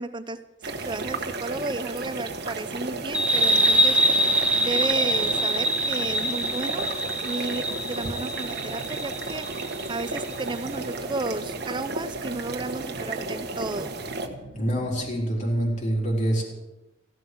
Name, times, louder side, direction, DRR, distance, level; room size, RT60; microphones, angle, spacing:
voice 1, 0.0-4.3 4.6-6.9 7.2-9.5 9.9-14.0, right 2 dB, 25° right, 11 dB, 0.8 m, -33 dB
sound 1, 0.6-14.3, right 3 dB, 60° right, 1.4 m, -33 dB
sound 2, 3.1-10.3, right 1 dB, 5° right, 1.1 m, -24 dB
sound 3, 8.3-15.8, right 3 dB, 90° left, 6.7 m, -49 dB
voice 2, 14.5-16.4, right 1 dB, 40° left, -1 dB, 3.8 m, -25 dB
15.0 x 12.0 x 6.1 m, 1.0 s
head